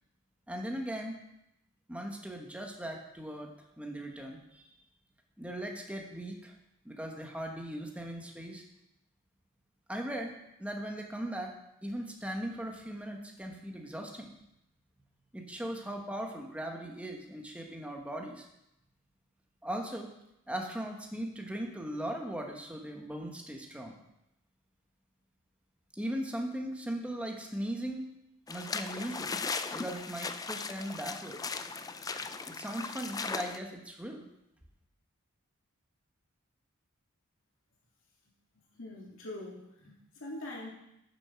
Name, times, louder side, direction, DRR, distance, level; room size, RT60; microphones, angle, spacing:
voice 1, 0.5-1.2 1.9-4.7 5.4-6.5 6.8-8.6 9.9-11.6 11.8-14.3 15.3-18.5 19.6-20.1 20.5-23.9 25.9-28.1 28.5-29.3 29.7-31.4 32.5-34.2, right 1 dB, 5° right, 2 dB, 1.2 m, -38 dB
sound 1, 28.5-33.6, left 4 dB, 15° left, 0.4 m, -38 dB
voice 2, 38.7-40.7, left 1 dB, 60° left, -4 dB, 2.9 m, -43 dB
9.0 x 7.5 x 5.9 m, 0.85 s
head